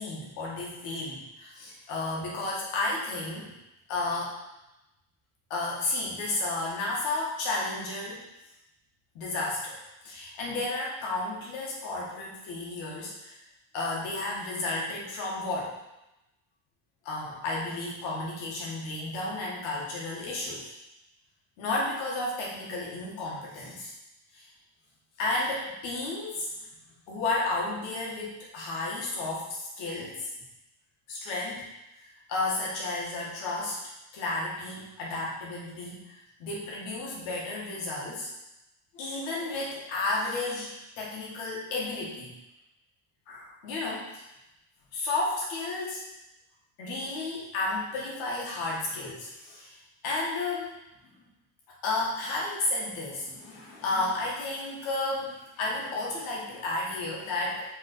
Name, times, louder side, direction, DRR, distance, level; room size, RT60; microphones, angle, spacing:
voice 1, 0.0-3.5 3.9-4.4 5.5-8.2 9.1-9.8 10.0-13.4 13.7-15.8 17.1-20.7 21.6-23.9 24.3-24.5 25.2-26.5 27.1-30.3 31.1-31.7 32.0-33.8 34.1-38.3 38.9-42.3 43.3-44.3 44.9-46.1 46.8-49.8 50.0-50.7 51.8-57.6, left 2 dB, 85° left, -3 dB, 2.0 m, -32 dB
5.2 x 4.1 x 4.6 m, 0.92 s
supercardioid pair, 100°, 46 cm